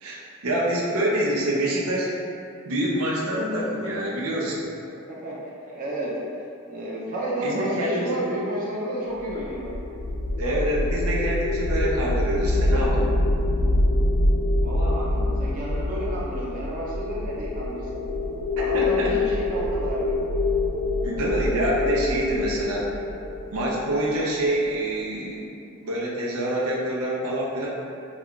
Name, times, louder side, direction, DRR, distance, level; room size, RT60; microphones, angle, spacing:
voice 1, 0.0-2.1 2.7-4.7 7.4-8.2 10.4-13.1 18.7-19.1 21.0-22.9 23.5-25.4 25.8-27.7, right 1 dB, 90° right, -5 dB, 0.5 m, -26 dB
voice 2, 5.7-6.1 6.7-9.7 14.6-18.0 18.6-20.0, right 1 dB, 40° right, -6 dB, 0.5 m, -31 dB
sound 1, 9.3-24.5, left 2 dB, 85° left, 0.4 m, -25 dB
2.4 x 2.2 x 3.7 m, 2.5 s
head